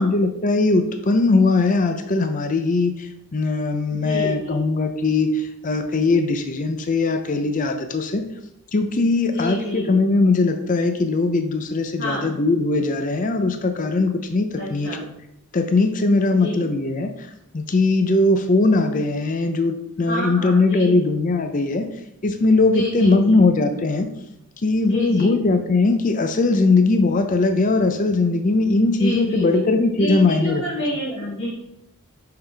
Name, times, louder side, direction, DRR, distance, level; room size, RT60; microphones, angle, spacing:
voice 1, 0.0-8.2 8.7-15.0 15.5-17.1 17.5-21.9 22.2-24.1 24.6-30.6, left 3 dB, 35° left, 6 dB, 0.5 m, -20 dB
voice 2, 3.9-4.6 9.2-10.0 12.0-12.3 14.6-15.1 16.3-16.7 20.0-21.1 22.7-23.4 24.8-25.4 28.7-29.6 30.0-31.5, equal, 55° left, -8 dB, 1.8 m, -29 dB
5.6 x 5.5 x 3.3 m, 0.82 s
head